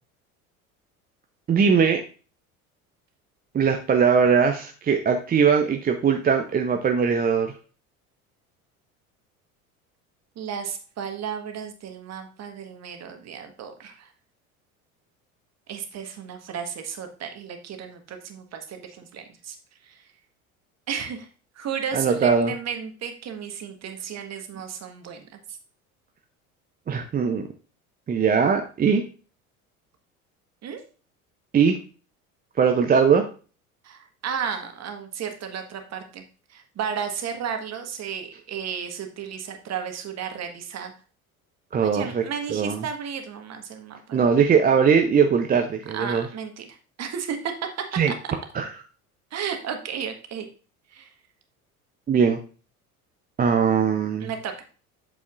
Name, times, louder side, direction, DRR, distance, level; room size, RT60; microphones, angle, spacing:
voice 1, 1.5-2.0 3.5-7.5 21.9-22.5 26.9-27.5 28.1-29.0 31.5-31.8 32.6-33.2 41.7-42.2 42.5-42.8 44.1-46.3 47.9-48.1 48.5-48.7 52.1-52.4 53.4-54.3, right 6 dB, 20° right, 5 dB, 0.7 m, -20 dB
voice 2, 10.3-14.1 15.7-19.6 19.8-20.0 20.9-21.3 21.5-25.2 30.6-30.8 33.8-36.2 36.5-40.9 41.8-44.4 45.9-46.7 47.0-47.8 49.3-50.5 50.9-51.1 54.2-54.6, right 7 dB, 35° right, 6 dB, 1.5 m, -33 dB
8.3 x 7.0 x 2.5 m, 0.37 s
figure-of-eight pair, 70°, 43 cm